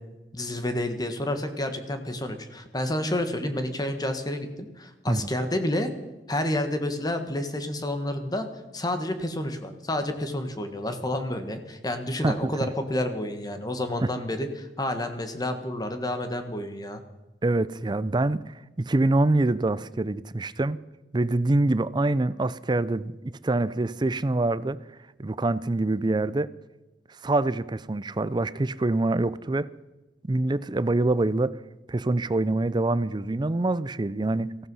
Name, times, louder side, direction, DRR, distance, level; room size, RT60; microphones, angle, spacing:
voice 1, 0.3-5.9 6.3-8.5 8.7-17.0, left 1 dB, 20° left, 1.5 m, -29 dB
voice 2, 12.2-12.7 14.0-14.1 17.4-20.8 21.1-24.8 25.2-26.5 27.2-29.7 30.2-31.5 31.9-34.6, right 2 dB, 25° right, 0.5 m, -25 dB
17.0 x 15.0 x 5.5 m
head